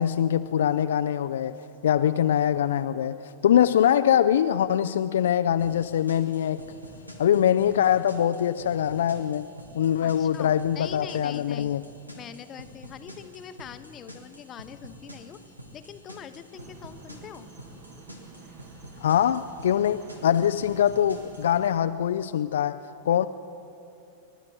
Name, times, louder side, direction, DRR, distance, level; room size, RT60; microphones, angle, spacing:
voice 1, 0.0-1.6 1.8-6.6 7.2-9.5 9.7-11.8 19.0-23.3, left 10 dB, 60° left, 10 dB, 0.3 m, -23 dB
sound 1, 5.6-21.6, equal, 85° right, 1.9 m, -48 dB
voice 2, 10.0-11.7 12.1-15.4 15.7-17.5, left 8 dB, 30° left, 11 dB, 0.8 m, -43 dB
sound 2, 16.5-21.8, right 5 dB, 40° right, 1.5 m, -50 dB
29.0 x 12.0 x 4.2 m, 2.8 s
figure-of-eight pair, 90°, 0 cm